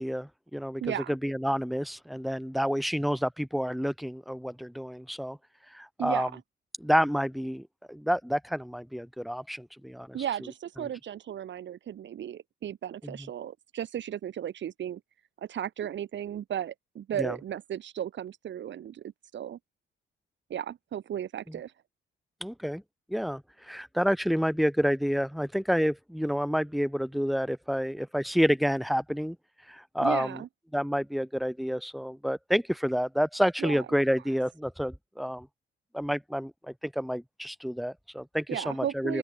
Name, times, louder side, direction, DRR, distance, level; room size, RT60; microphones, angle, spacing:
voice 1, 0.0-0.8 1.1-5.4 5.7-6.3 6.8-10.2 13.0-13.2 17.2-17.4 22.4-22.8 23.1-29.4 29.7-30.4 30.7-35.5 35.9-39.2, equal, ahead, 6.9 m, -29 dB
voice 2, 0.8-1.2 6.0-6.4 10.1-15.0 15.4-19.6 20.5-21.7 30.0-30.5 33.6-33.9 38.5-39.2, right 10 dB, 65° right, 7.5 m, -35 dB
open air
cardioid pair, 90°, 20 cm